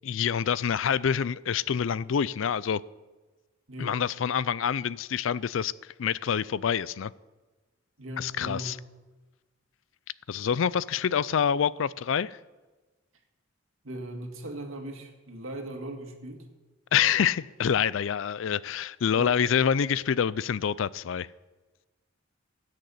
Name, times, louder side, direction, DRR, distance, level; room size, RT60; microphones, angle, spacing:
voice 1, 0.0-2.8 3.8-5.7 6.0-7.1 8.2-8.8 10.3-12.4 16.9-21.3, left 8 dB, 65° left, 0.4 m, -26 dB
voice 2, 8.0-8.7 13.8-16.4 19.1-19.4, right 1 dB, 80° right, 1.9 m, -39 dB
14.0 x 6.6 x 8.4 m
head